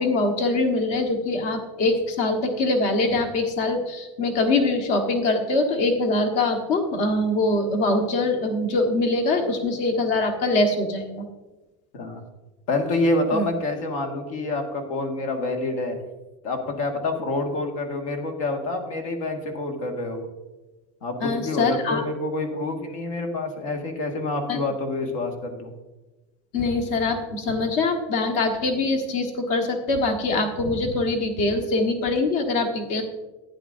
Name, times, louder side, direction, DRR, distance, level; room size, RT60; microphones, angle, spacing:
voice 1, 0.0-11.3 13.3-13.5 21.2-22.0 24.5-24.6 26.5-33.0, left 2 dB, 60° left, 5 dB, 1.4 m, -23 dB
voice 2, 12.7-16.0 16.4-20.2 21.0-25.7, left 2 dB, 85° left, 4 dB, 1.8 m, -27 dB
12.0 x 10.0 x 2.6 m, 1.1 s
supercardioid pair, 155°, 17 cm